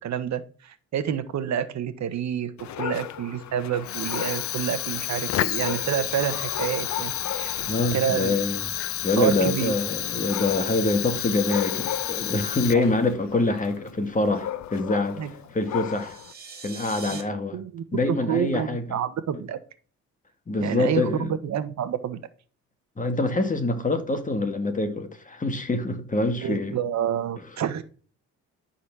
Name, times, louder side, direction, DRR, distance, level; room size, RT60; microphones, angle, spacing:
voice 1, 0.0-2.5 2.8-7.6 7.9-8.4 9.2-9.7 12.7-12.9 15.2-15.3 17.1-17.2 17.5-19.6 20.6-22.2 26.4-27.8, right 9 dB, 65° right, 1.1 m, -28 dB
Dog, 2.6-16.3, left 11 dB, 65° left, 0.8 m, -37 dB
Fire, 3.8-13.1, left 13 dB, 50° left, 0.4 m, -30 dB
voice 2, 7.7-8.6 9.0-15.2 15.5-16.2 16.6-17.6 17.9-19.0 20.5-21.3 23.0-26.7, left 2 dB, 25° left, 1.7 m, -25 dB
sound 1, 15.6-17.2, right 5 dB, 30° right, 2.4 m, -41 dB
12.5 x 4.2 x 6.1 m
cardioid pair, 90°, 30 cm